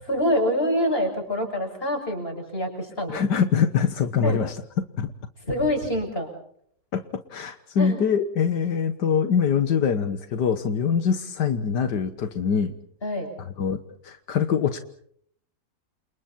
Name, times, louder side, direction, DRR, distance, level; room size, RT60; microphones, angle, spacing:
voice 1, 0.0-3.2 4.2-4.4 5.5-6.3 7.8-8.0 13.0-13.3, equal, 35° left, 4 dB, 7.1 m, -25 dB
voice 2, 3.1-5.1 6.9-12.7 13.6-14.8, left 7 dB, 80° left, 9 dB, 1.9 m, -24 dB
29.5 x 28.0 x 4.3 m, 0.65 s
omnidirectional pair, 1.8 m